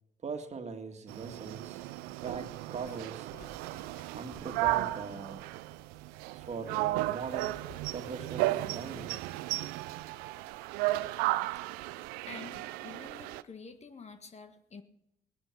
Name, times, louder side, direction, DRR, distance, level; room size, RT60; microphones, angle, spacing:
voice 1, 0.2-1.8 2.2-3.3 4.1-5.4 6.3-7.6 7.9-9.2, right 5 dB, 45° right, 6 dB, 1.8 m, -41 dB
sound 1, 1.1-13.4, right 18 dB, 85° right, 0.4 m, -35 dB
sound 2, 1.8-9.2, left 3 dB, 70° left, 3.0 m, -56 dB
voice 2, 12.3-14.8, left 5 dB, 45° left, 8 dB, 1.6 m, -48 dB
18.0 x 10.0 x 5.9 m, 0.84 s
supercardioid pair, 55°, 15 cm